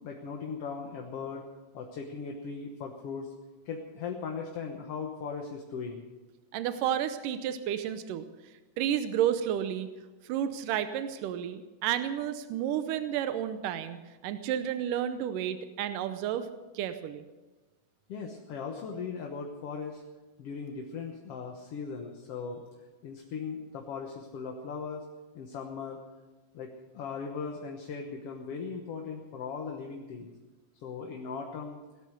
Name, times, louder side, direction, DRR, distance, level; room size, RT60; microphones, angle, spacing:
voice 1, 0.0-1.4 1.7-3.3 3.7-6.1 18.1-20.0 20.4-22.6 23.0-25.0 25.3-26.0 26.5-26.7 26.9-30.3 30.8-31.8, left 5 dB, 55° left, 1 dB, 1.9 m, -38 dB
voice 2, 6.5-8.3 8.8-9.9 10.3-14.0 14.2-16.5 16.7-17.2, right 10 dB, 85° right, 10 dB, 2.4 m, -31 dB
17.5 x 12.5 x 6.5 m, 1.2 s
omnidirectional pair, 3.7 m